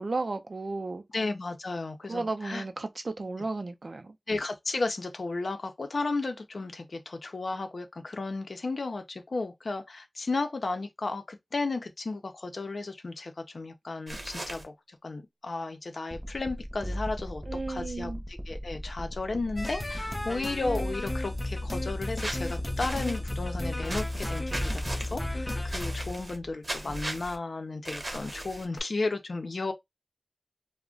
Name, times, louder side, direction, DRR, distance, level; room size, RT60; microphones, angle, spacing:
voice 1, 0.0-1.0 2.1-4.2 17.5-18.2, right 3 dB, 70° right, 0.4 m, -34 dB
voice 2, 1.1-2.6 4.3-14.7 15.0-17.4 17.7-18.1 18.5-29.7, left 3 dB, 85° left, 0.5 m, -34 dB
sound 1, 14.1-14.6 22.2-23.2 23.8-25.1 25.7-26.4 26.6-27.4 27.8-28.8, right 1 dB, 50° right, 0.8 m, -37 dB
sound 2, 16.1-26.5, equal, 10° right, 0.7 m, -38 dB
sound 3, 19.6-26.2, left 1 dB, 30° left, 0.5 m, -34 dB
2.3 x 2.1 x 3.7 m
wide cardioid pair, 65°, 0 cm